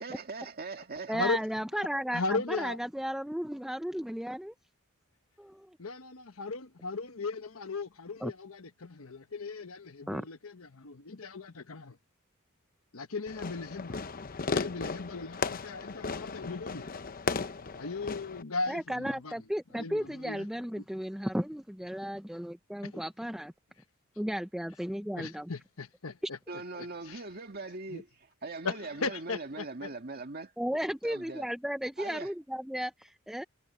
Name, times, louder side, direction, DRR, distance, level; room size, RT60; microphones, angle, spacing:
voice 1, 0.0-1.3 26.5-28.1 28.4-30.5 31.0-31.5 32.0-32.3, right 3 dB, 50° right, 2.1 m, -41 dB
voice 2, 1.1-4.5 5.4-5.7 8.2-8.3 10.1-10.2 18.7-23.5 24.2-25.5 30.6-33.4, equal, ahead, 0.5 m, -34 dB
voice 3, 2.1-2.8 5.8-12.0 12.9-14.0 14.5-16.9 17.7-19.3 19.7-20.5 22.8-23.0 25.2-26.4 26.8-27.2 27.9-28.0 28.6-29.9, left 3 dB, 85° left, 1.2 m, -37 dB
Fireworks, 13.3-18.4, left 4 dB, 45° left, 0.8 m, -36 dB
head